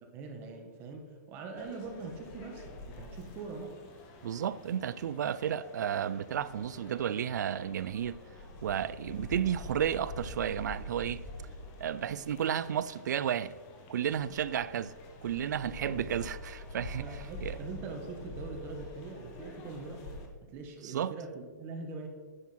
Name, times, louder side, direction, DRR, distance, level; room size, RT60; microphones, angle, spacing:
voice 1, 0.0-3.8 15.6-16.1 17.0-22.1, right 3 dB, 25° right, 1.3 m, -43 dB
sound 1, 1.6-20.3, left 1 dB, 30° left, 1.2 m, -46 dB
voice 2, 4.2-8.2 8.6-11.2 11.8-13.5 13.9-14.9 15.2-17.0 17.4-17.6 20.8-21.1, right 9 dB, 70° right, 0.5 m, -32 dB
9.9 x 7.2 x 4.4 m
hypercardioid pair, 160°, 10 cm